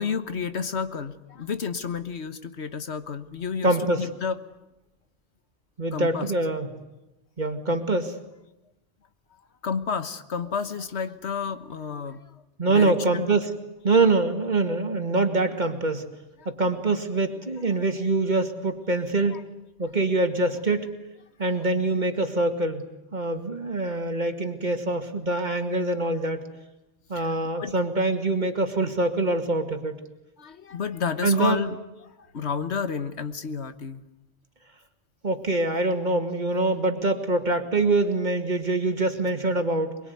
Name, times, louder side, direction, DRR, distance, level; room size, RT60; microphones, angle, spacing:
voice 1, 0.0-4.4 5.9-6.3 9.6-12.3 12.7-13.4 16.4-16.5 19.3-19.4 21.5-21.7 27.1-27.3 27.6-27.7 30.4-31.8 32.2-34.0, left 6 dB, 80° left, 11 dB, 1.6 m, -31 dB
voice 2, 3.6-4.1 5.8-6.7 7.4-8.2 12.6-13.5 13.8-16.0 16.5-19.4 19.8-20.9 21.4-26.5 27.1-30.0 31.2-31.6 35.2-40.0, right 2 dB, 45° right, 6 dB, 2.3 m, -24 dB
23.5 x 23.0 x 9.5 m, 0.96 s
omnidirectional pair, 1.1 m